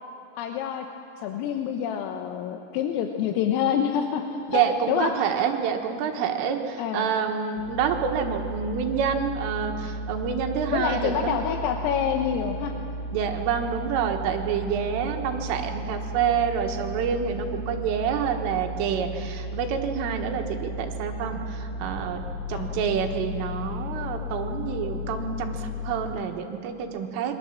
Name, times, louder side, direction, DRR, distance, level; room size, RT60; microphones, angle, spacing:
voice 1, 0.4-0.9 1.2-4.2 4.5-5.1 6.8-7.1 10.7-12.7 22.5-22.7, left 8 dB, 80° left, 4 dB, 3.8 m, -27 dB
voice 2, 4.5-11.4 13.1-22.2 22.5-27.3, right 7 dB, 80° right, 4 dB, 4.1 m, -27 dB
sound 1, 7.6-25.9, left 1 dB, 25° left, 6.8 m, -34 dB
27.5 x 23.5 x 7.5 m, 2.6 s
omnidirectional pair, 5.9 m